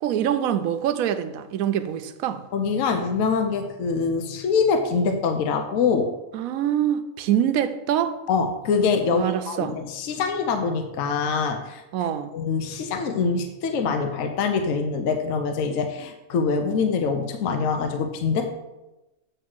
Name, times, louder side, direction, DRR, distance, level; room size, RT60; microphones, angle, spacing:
voice 1, 0.0-2.4 6.3-8.2 9.0-9.8 11.9-12.3, right 10 dB, 85° right, 10 dB, 1.0 m, -25 dB
voice 2, 2.5-6.1 8.3-11.8 12.3-18.5, left 5 dB, 70° left, 5 dB, 1.0 m, -24 dB
7.8 x 3.1 x 6.1 m, 1.0 s
omnidirectional pair, 1.4 m